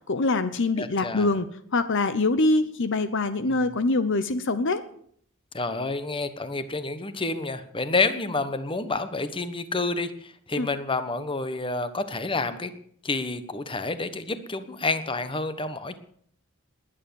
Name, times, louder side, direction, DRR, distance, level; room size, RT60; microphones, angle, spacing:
voice 1, 0.1-4.8 10.6-10.7, left 2 dB, 60° left, 12 dB, 0.9 m, -24 dB
voice 2, 0.8-1.3 3.5-3.8 5.5-12.7 13.0-16.0, left 3 dB, 25° left, 11 dB, 1.3 m, -29 dB
20.5 x 9.5 x 7.1 m, 0.63 s
head